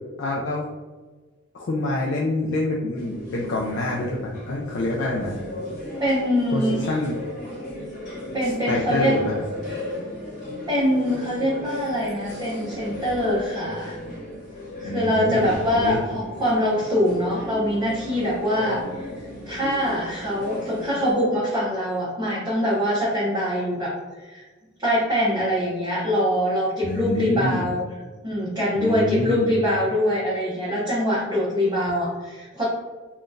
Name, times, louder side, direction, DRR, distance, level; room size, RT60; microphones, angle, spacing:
voice 1, 0.2-0.7 1.5-5.4 6.5-7.2 8.7-9.3 14.8-16.0 26.8-27.6 28.8-29.5, left 1 dB, 55° left, -2 dB, 0.4 m, -26 dB
sound 1, 3.0-21.1, left 1 dB, 40° left, 1.1 m, -35 dB
voice 2, 6.0-6.9 8.3-9.2 10.7-14.0 14.8-19.1 19.5-24.5 24.8-27.8 28.2-32.6, equal, 20° right, -10 dB, 0.8 m, -23 dB
3.6 x 2.3 x 2.5 m, 1.3 s
head